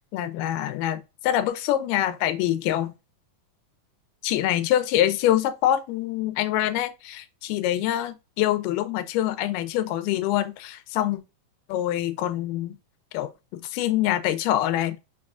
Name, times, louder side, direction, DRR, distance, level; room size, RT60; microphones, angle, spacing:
voice 1, 0.1-3.0 4.2-11.2 11.7-12.8 13.1-15.0, left 12 dB, 80° left, 2.1 m, -25 dB
5.3 x 2.2 x 2.3 m
omnidirectional pair, 3.9 m